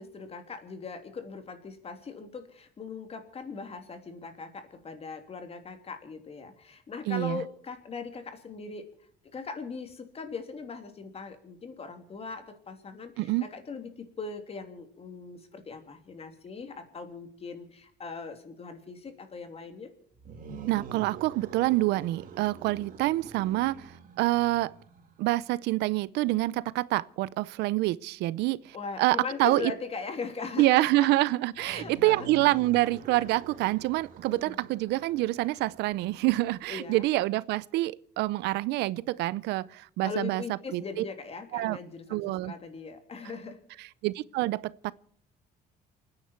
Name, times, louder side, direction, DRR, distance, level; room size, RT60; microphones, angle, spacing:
voice 1, 0.0-8.8 9.3-19.9 28.7-31.1 31.6-32.3 34.3-34.6 36.7-37.1 40.0-43.6, left 5 dB, 35° left, 3.1 m, -40 dB
voice 2, 7.1-7.4 13.2-13.5 20.7-24.7 25.2-29.7 30.6-40.4 40.7-41.0 41.5-41.8 42.1-42.5 44.0-44.9, right 18 dB, 85° right, 0.6 m, -27 dB
sound 1, 20.1-25.3 31.5-37.2, right 6 dB, 55° right, 2.8 m, -47 dB
29.0 x 9.8 x 4.5 m
cardioid pair, 110°, 17 cm